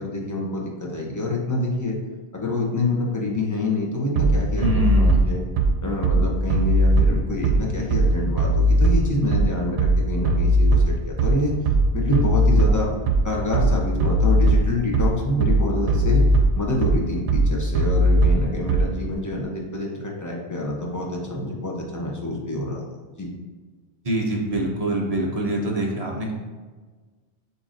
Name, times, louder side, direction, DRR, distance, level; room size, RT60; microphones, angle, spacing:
voice 1, 0.0-2.0 2.3-5.4 5.8-11.6 11.9-12.9 13.2-16.2 16.5-22.8 23.2-23.3, left 2 dB, 20° left, -2 dB, 0.6 m, -27 dB
Bass drum, 4.2-19.1, right 1 dB, 90° right, 0.9 m, -19 dB
voice 2, 4.6-5.2 24.0-26.3, right 1 dB, 40° right, -1 dB, 0.7 m, -25 dB
7.4 x 2.8 x 2.5 m, 1.4 s
omnidirectional pair, 1.2 m